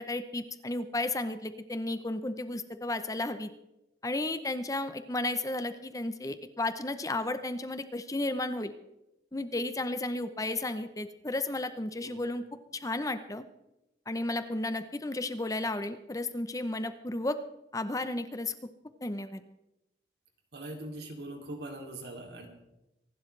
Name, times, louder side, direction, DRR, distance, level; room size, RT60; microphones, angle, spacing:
voice 1, 0.0-3.5 4.0-8.7 9.3-12.4 12.7-13.4 14.1-17.4 17.7-18.5 19.0-19.4, left 2 dB, 20° left, 10 dB, 0.7 m, -33 dB
voice 2, 20.5-22.5, right 1 dB, 65° right, 3 dB, 2.8 m, -41 dB
25.5 x 12.0 x 3.3 m, 0.92 s
head